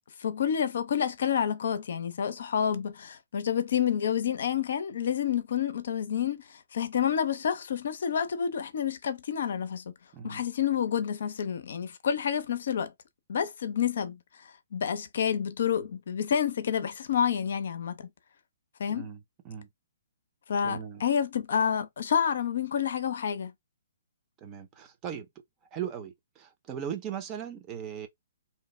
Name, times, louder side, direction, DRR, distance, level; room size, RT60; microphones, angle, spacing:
voice 1, 0.2-9.9 10.2-12.9 13.3-14.2 14.7-18.1 18.8-19.1 20.5-23.5, left 8 dB, 60° left, 0.5 m, -29 dB
voice 2, 10.1-10.4 18.9-19.2 19.4-19.7 20.6-21.0 24.4-25.3 25.7-28.1, right 8 dB, 25° right, 0.7 m, -38 dB
2.8 x 2.1 x 3.2 m
figure-of-eight pair, 125°, 0 cm